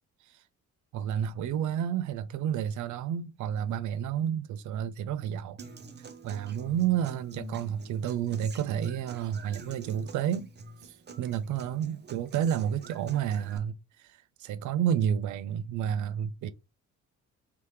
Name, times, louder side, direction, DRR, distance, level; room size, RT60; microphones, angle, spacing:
voice 1, 0.9-5.6 6.2-10.5 10.8-16.5, right 9 dB, 75° right, 0.5 m, -30 dB
Human voice / Acoustic guitar, 5.6-13.6, right 3 dB, 35° right, 0.7 m, -47 dB
3.4 x 2.8 x 3.2 m
cardioid pair, 90°, 30 cm